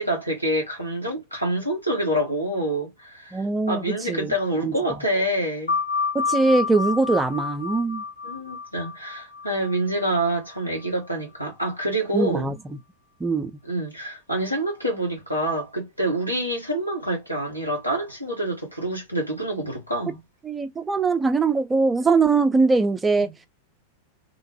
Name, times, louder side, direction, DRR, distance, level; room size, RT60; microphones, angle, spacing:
voice 1, 0.0-5.8 8.2-12.5 13.6-20.2 23.1-23.3, right 1 dB, 90° left, 1.3 m, -27 dB
voice 2, 3.3-3.8 4.1-4.3 4.6-4.7 6.1-8.0 12.1-12.5 13.2-13.5 20.4-23.3, right 3 dB, 15° right, 0.4 m, -21 dB
sound 1, 5.7-10.9, left 5 dB, 75° left, 0.7 m, -29 dB
2.8 x 2.1 x 3.0 m
figure-of-eight pair, 90°, 0 cm